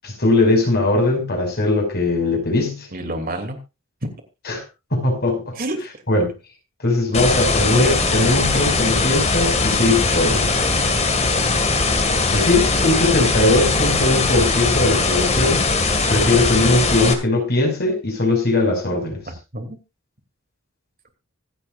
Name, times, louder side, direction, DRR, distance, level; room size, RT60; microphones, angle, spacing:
voice 1, 0.0-2.9 4.5-4.6 4.9-5.5 6.1-6.3 6.8-10.5 12.3-15.6 16.1-19.2, left 2 dB, 50° left, 2 dB, 5.9 m, -20 dB
voice 2, 2.9-3.6 5.6-5.8 19.3-19.8, right 1 dB, 45° right, 5 dB, 2.9 m, -30 dB
sound 1, 7.1-17.1, left 3 dB, 30° left, 2.1 m, -20 dB
25.5 x 8.6 x 2.6 m, 0.27 s
head